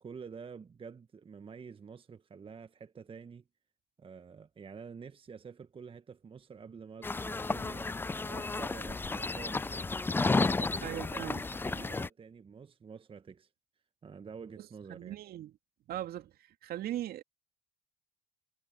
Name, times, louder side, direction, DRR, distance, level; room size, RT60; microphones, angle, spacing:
voice 1, 0.0-3.4 4.0-7.9 8.2-9.9 10.3-13.5 14.0-15.2, right 6 dB, 25° right, 1.5 m, -48 dB
sound 1, 7.0-12.1, left 3 dB, 10° left, 0.5 m, -32 dB
voice 2, 10.8-11.4 14.6-15.5 15.9-16.3 16.6-17.2, right 13 dB, 50° right, 2.4 m, -39 dB
hypercardioid pair, 65°, 20 cm